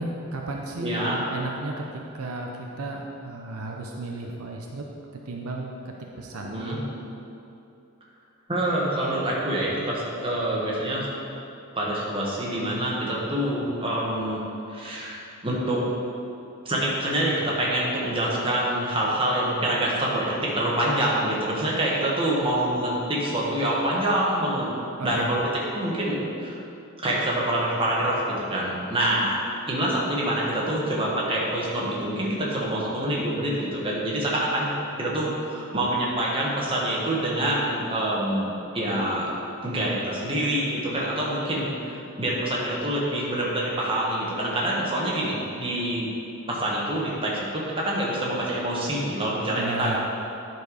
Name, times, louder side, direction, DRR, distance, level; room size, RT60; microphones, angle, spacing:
voice 1, 0.0-1.8 2.1-2.5 2.8-4.8 5.3-5.7 6.2-6.6 25.0-25.3 49.5-50.0, right 2 dB, 75° right, 0 dB, 0.7 m, -33 dB
voice 2, 0.8-1.2 6.4-6.8 8.5-11.1 11.7-14.4 14.7-15.9 16.6-24.7 25.0-26.6 27.0-28.2 28.5-29.4 29.7-39.3 39.6-46.1 46.5-50.0, right 1 dB, 25° right, -5 dB, 1.5 m, -26 dB
10.5 x 4.6 x 4.8 m, 2.7 s
head